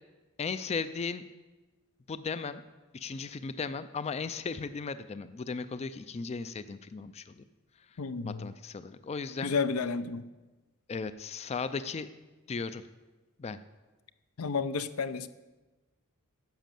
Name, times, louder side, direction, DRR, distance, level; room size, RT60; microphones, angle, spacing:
voice 1, 0.4-1.2 2.1-2.6 2.9-7.4 8.2-9.5 10.9-12.1 12.5-12.8 13.4-13.6, left 5 dB, 30° left, 13 dB, 0.4 m, -36 dB
voice 2, 8.0-8.5 9.4-10.2 14.4-15.3, left 5 dB, 75° left, 13 dB, 0.6 m, -31 dB
10.5 x 7.4 x 7.6 m, 1.2 s
head